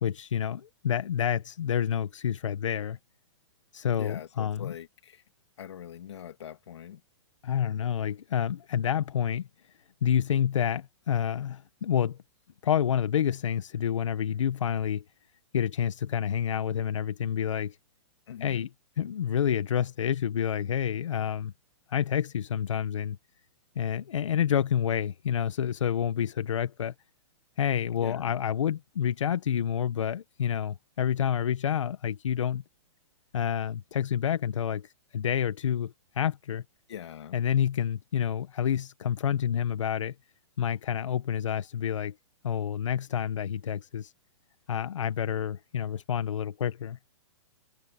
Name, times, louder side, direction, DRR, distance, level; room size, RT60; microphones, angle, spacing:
voice 1, 0.0-3.0 3.7-4.7 7.4-9.5 10.0-12.2 12.6-15.0 15.5-17.8 18.4-18.7 19.0-21.5 21.9-23.2 23.7-26.9 27.6-32.6 33.3-36.6 37.3-40.1 40.6-42.1 42.4-44.1 44.7-47.0, left 9 dB, 85° left, 1.2 m, -28 dB
voice 2, 3.9-5.2 5.6-7.0 18.3-18.7 28.0-28.3 36.9-37.4, left 9 dB, 65° left, 2.1 m, -42 dB
hypercardioid pair, 175°, 16 cm